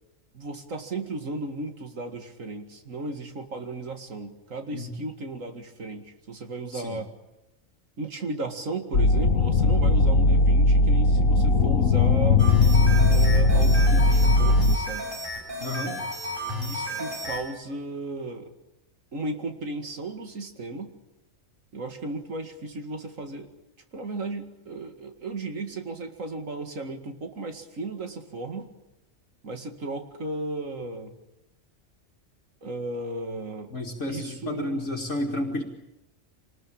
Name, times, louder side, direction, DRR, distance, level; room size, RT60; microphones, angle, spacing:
voice 1, 0.3-7.1 8.0-12.5 13.1-15.1 16.4-18.5 19.1-20.9 21.7-23.5 23.9-28.7 29.4-31.2 32.6-33.7 34.1-34.9, right 2 dB, 80° right, 6 dB, 2.5 m, -35 dB
sound 1, 8.9-14.8, left 2 dB, 85° left, 1.5 m, -19 dB
sound 2, 12.4-17.4, left 1 dB, 40° right, 7.2 m, -33 dB
voice 2, 15.6-16.0 33.7-35.6, left 1 dB, 65° left, 0 dB, 2.3 m, -31 dB
25.5 x 20.0 x 8.8 m, 0.94 s
omnidirectional pair, 1.4 m